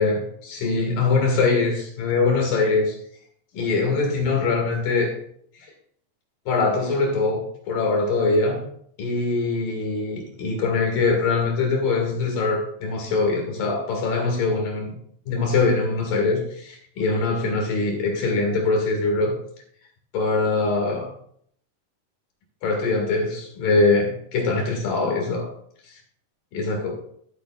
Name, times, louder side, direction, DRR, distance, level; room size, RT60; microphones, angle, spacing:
voice 1, 0.0-3.0 3.5-5.2 6.5-8.6 9.0-14.9 15.3-19.4 20.1-21.1 22.6-25.5 26.5-26.9, left 3 dB, 65° left, 3.6 m, -23 dB
13.5 x 8.2 x 2.4 m
omnidirectional pair, 4.5 m